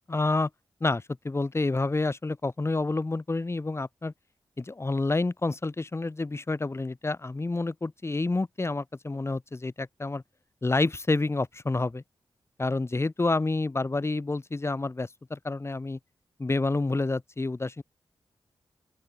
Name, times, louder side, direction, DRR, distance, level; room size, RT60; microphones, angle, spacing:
voice 1, 0.1-0.5 0.8-4.1 4.6-10.2 10.6-12.0 12.6-16.0 16.4-17.8, left 3 dB, 30° left, 1.4 m, -28 dB
open air
cardioid pair, 70°, 9 cm